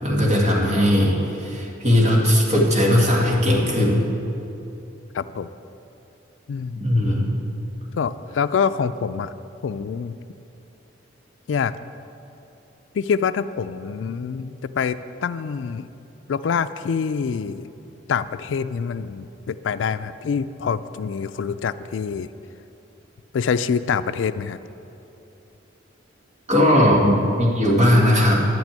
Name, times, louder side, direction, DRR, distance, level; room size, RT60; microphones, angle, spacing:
voice 1, 0.0-4.0 6.8-7.3 26.5-28.4, left 1 dB, 35° right, -3 dB, 2.0 m, -18 dB
voice 2, 5.1-5.5 6.5-6.8 7.9-9.3 9.6-10.2 11.5-11.8 12.9-15.9 16.3-17.7 18.1-22.3 23.3-24.6 28.3-28.4, left 6 dB, 80° left, 13 dB, 0.4 m, -25 dB
10.5 x 6.2 x 8.8 m, 2.9 s
head